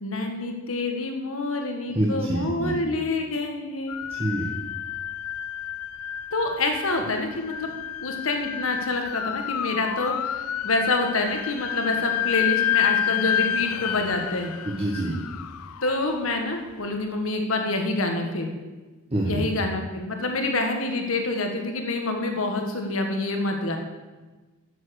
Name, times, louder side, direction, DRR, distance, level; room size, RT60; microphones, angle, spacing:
voice 1, 0.0-4.0 6.3-7.7 8.0-14.5 15.8-18.5 19.2-23.8, left 2 dB, 70° left, 4 dB, 1.7 m, -27 dB
voice 2, 1.9-2.8 4.1-4.5 14.6-15.1 19.1-19.5, right 1 dB, 30° right, -3 dB, 1.4 m, -26 dB
sound 1, 3.9-16.9, left 10 dB, 85° left, 0.4 m, -30 dB
11.0 x 7.5 x 6.5 m, 1.2 s
head